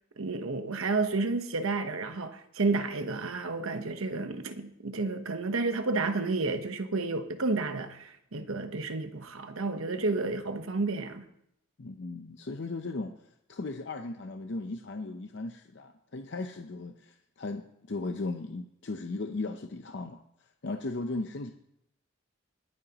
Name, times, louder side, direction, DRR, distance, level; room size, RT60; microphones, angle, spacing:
voice 1, 0.2-11.2, right 3 dB, 80° right, 1.1 m, -31 dB
voice 2, 11.8-20.2 20.6-21.5, left 3 dB, 55° left, 0.6 m, -37 dB
21.5 x 8.9 x 3.0 m
head